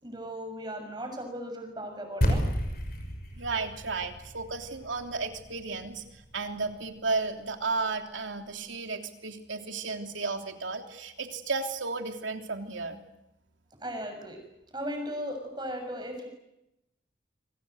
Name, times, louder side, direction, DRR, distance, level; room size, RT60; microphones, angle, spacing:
voice 1, 0.0-2.5 13.8-14.4 14.7-16.3, equal, 20° right, 5 dB, 6.7 m, -37 dB
sound 1, 2.2-6.7, equal, 50° left, 5.9 m, -32 dB
voice 2, 3.3-13.0, right 3 dB, 85° right, 4 dB, 3.2 m, -33 dB
28.0 x 24.5 x 8.0 m, 0.87 s
head